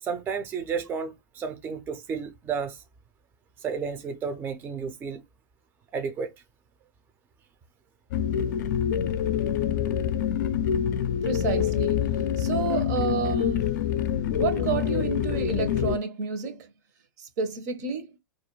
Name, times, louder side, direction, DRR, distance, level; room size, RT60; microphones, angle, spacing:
voice 1, 0.0-2.8 3.6-5.2 5.9-6.3, right 6 dB, 20° right, 0.4 m, -32 dB
sound 1, 8.1-16.0, left 9 dB, 65° left, 0.4 m, -26 dB
voice 2, 11.2-12.1 12.4-13.7 14.4-16.7 17.2-18.1, right 5 dB, 60° right, 0.7 m, -30 dB
2.3 x 2.1 x 3.0 m
hypercardioid pair, 115°, 10 cm